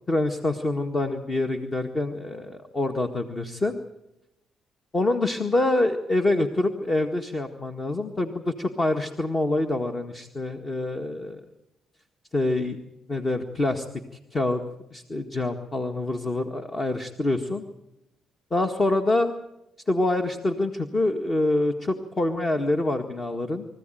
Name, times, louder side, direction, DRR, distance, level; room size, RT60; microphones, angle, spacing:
voice 1, 0.1-3.8 4.9-11.4 12.3-12.8 13.1-13.9 14.3-14.6 14.9-17.6 18.5-19.3 19.9-23.7, left 2 dB, 30° left, 5 dB, 1.8 m, -26 dB
25.0 x 15.0 x 9.2 m, 0.87 s
cardioid pair, 90°, 0 cm